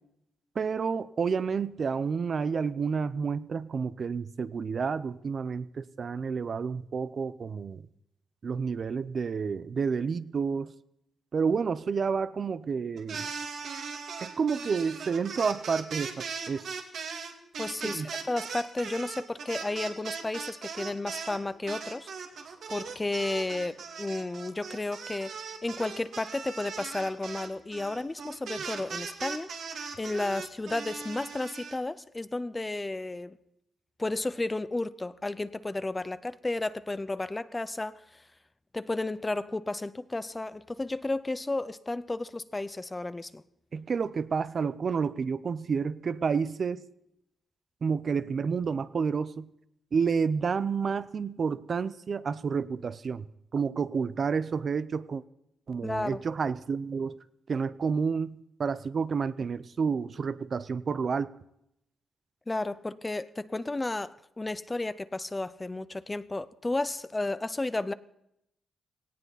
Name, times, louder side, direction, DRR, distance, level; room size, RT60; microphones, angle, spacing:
voice 1, 0.6-7.8 8.4-10.7 11.3-13.3 14.2-16.7 17.8-18.1 43.7-46.8 47.8-49.5 49.9-53.3 53.5-55.2 55.7-57.2 57.5-61.3, right 5 dB, 50° right, 15 dB, 0.6 m, -30 dB
sound 1, 13.0-21.4 21.7-31.8, right 5 dB, 75° right, 2.4 m, -39 dB
voice 2, 17.6-22.1 22.7-29.5 30.0-33.4 34.0-38.2 38.7-43.4 55.8-56.2 62.5-67.9, left 2 dB, 20° left, 15 dB, 0.6 m, -33 dB
18.5 x 18.0 x 4.1 m, 0.80 s
cardioid pair, 110°, 0 cm